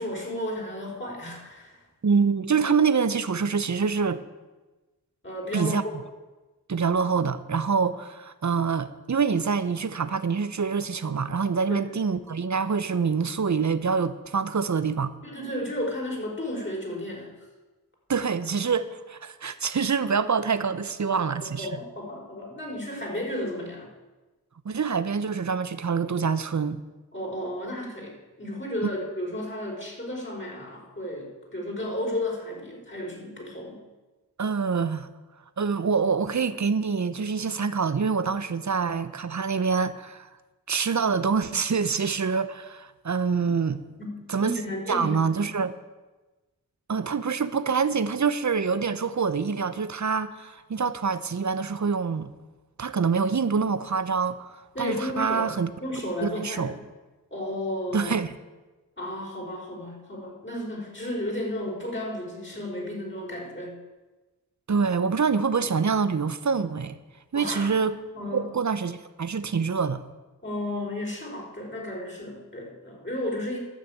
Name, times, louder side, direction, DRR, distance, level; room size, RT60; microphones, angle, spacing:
voice 1, 0.0-1.8 5.2-5.9 11.7-11.9 15.2-17.3 21.0-21.2 21.6-23.9 27.1-33.8 44.0-44.1 44.4-45.2 54.7-55.5 55.8-56.7 57.3-58.2 59.0-63.8 67.3-67.7 68.1-68.5 70.4-73.6, left 1 dB, 30° left, 5.1 m, -33 dB
voice 2, 2.0-4.2 5.5-5.8 6.7-15.1 18.1-21.7 24.6-26.8 34.4-35.1 35.6-40.3 40.7-43.8 44.3-44.5 44.9-45.7 46.9-52.3 52.8-55.7 56.2-56.8 57.9-58.3 64.7-66.9 67.3-67.9 68.3-70.0, right 5 dB, 50° right, 0.9 m, -26 dB
12.5 x 6.6 x 8.7 m
cardioid pair, 40°, 37 cm